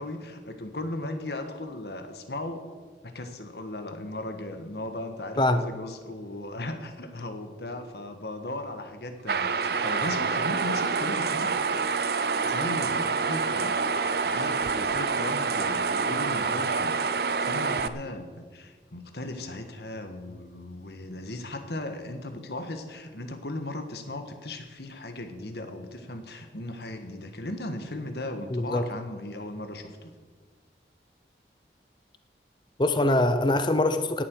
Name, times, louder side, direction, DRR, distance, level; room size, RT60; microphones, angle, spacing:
voice 1, 0.0-2.7 3.0-11.5 12.4-17.0 17.3-30.1, left 1 dB, 70° left, 7 dB, 1.5 m, -37 dB
voice 2, 5.4-5.7 28.5-28.9 32.8-34.2, left 1 dB, 25° left, 9 dB, 0.7 m, -23 dB
sound 1, 9.3-17.9, right 5 dB, 60° right, 0.6 m, -27 dB
17.0 x 10.5 x 4.7 m, 1.5 s
head